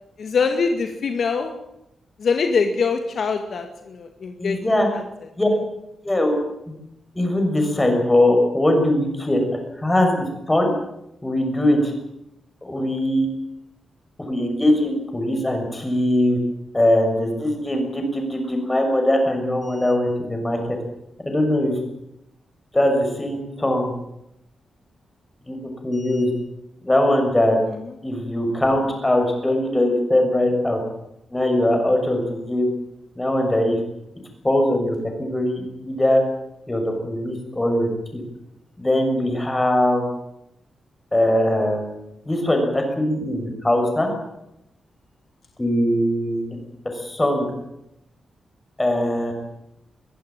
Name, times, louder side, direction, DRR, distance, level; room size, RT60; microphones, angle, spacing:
voice 1, 0.2-1.5 2.2-4.6 4.9-5.0 27.8-27.9, left 5 dB, 60° left, 5 dB, 2.1 m, -23 dB
voice 2, 4.4-4.9 5.4-5.5 6.0-6.4 7.1-9.4 9.8-10.7 11.2-11.9 12.6-13.3 14.3-16.4 16.7-20.6 21.2-21.8 22.7-23.9 25.5-25.6 25.8-26.3 26.8-27.6 28.0-30.8 31.3-32.7 33.1-33.8 34.4-36.2 36.7-38.2 38.8-40.1 41.1-41.8 42.2-44.1 45.6-46.4 46.9-47.5 48.8-49.3, left 1 dB, 15° left, 3 dB, 6.6 m, -21 dB
22.5 x 16.0 x 9.0 m, 0.82 s
wide cardioid pair, 130°, 0 cm